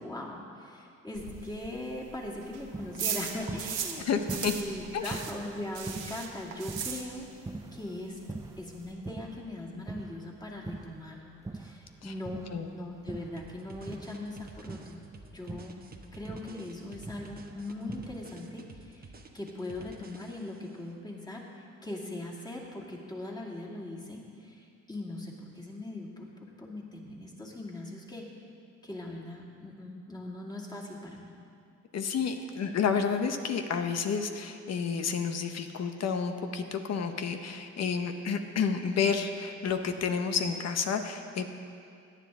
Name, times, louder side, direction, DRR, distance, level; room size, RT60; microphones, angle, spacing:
voice 1, 0.0-7.3 7.7-8.2 8.6-11.2 11.5-15.0 15.3-15.8 16.1-28.3 28.8-31.3, left 1 dB, 15° left, -3 dB, 2.3 m, -40 dB
sound 1, 1.1-4.0 4.3-7.5 7.7-7.8 8.2-8.3 8.4-8.9, right 8 dB, 85° right, 1.4 m, -37 dB
sound 2, 2.7-9.5 9.9-14.4 14.6-18.4, right 3 dB, 10° right, 0.5 m, -44 dB
voice 2, 4.1-4.5 4.9-5.2 12.0-12.1 12.5-12.7 31.9-41.5, left 6 dB, 60° left, 6 dB, 0.9 m, -30 dB
sound 3, 13.4-20.7, right 3 dB, 30° right, 1.0 m, -51 dB
17.0 x 10.0 x 3.7 m, 2.4 s
cardioid pair, 90°, 30 cm